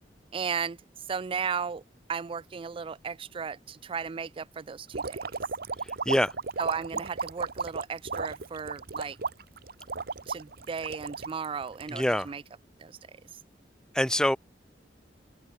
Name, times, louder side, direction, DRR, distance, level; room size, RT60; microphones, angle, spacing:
voice 1, 0.3-1.8 2.1-5.3 6.6-9.2 10.3-12.4 12.8-13.0, right 6 dB, 30° right, 0.4 m, -35 dB
sound 1, 4.9-12.3, right 4 dB, 60° right, 1.3 m, -34 dB
voice 2, 11.9-12.3 13.9-14.4, equal, 5° left, 1.1 m, -24 dB
open air
head